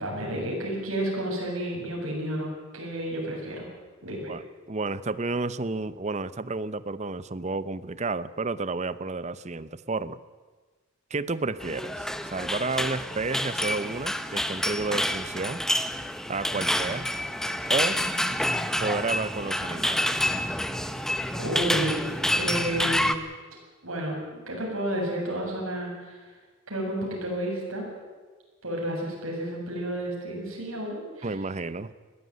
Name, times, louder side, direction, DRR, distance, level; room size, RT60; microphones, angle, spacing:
voice 1, 0.0-3.7 4.0-4.3 21.3-22.0 22.3-23.2 23.8-26.2 26.7-27.9 28.6-31.3, right 1 dB, 70° right, -1 dB, 7.6 m, -31 dB
voice 2, 4.1-10.2 11.1-15.6 16.3-17.1 17.7-18.0 18.8-20.2 31.2-31.9, right 3 dB, 30° right, 16 dB, 0.7 m, -31 dB
sound 1, 11.6-23.1, left 1 dB, ahead, 0.8 m, -28 dB
21.0 x 15.0 x 9.5 m, 1.4 s
head